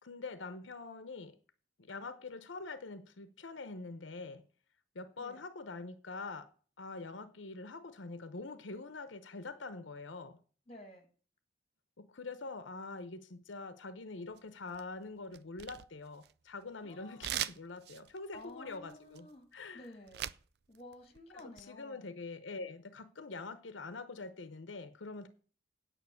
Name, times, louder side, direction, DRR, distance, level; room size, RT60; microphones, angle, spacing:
voice 1, 0.0-1.4 1.8-4.5 4.9-6.5 6.8-10.4 12.0-19.9 21.3-25.3, left 3 dB, 85° left, 0.9 m, -45 dB
voice 2, 10.7-11.1 12.5-12.6 16.8-17.4 18.3-19.5 19.7-20.3 20.7-22.1, left 1 dB, 35° left, 2.1 m, -52 dB
sound 1, 14.4-15.0 15.3-16.6 17.2-20.5 20.7-21.6, right 11 dB, 55° right, 0.4 m, -41 dB
9.3 x 5.9 x 8.3 m
head